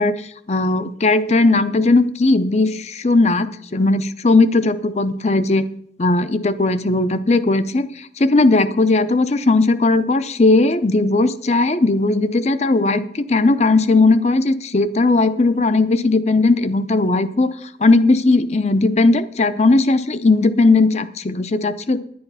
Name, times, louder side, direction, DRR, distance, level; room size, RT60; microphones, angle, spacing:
voice 1, 0.0-5.7 6.0-17.5 17.8-22.0, left 3 dB, 35° left, 12 dB, 0.6 m, -17 dB
10.5 x 10.0 x 5.6 m, 0.69 s
head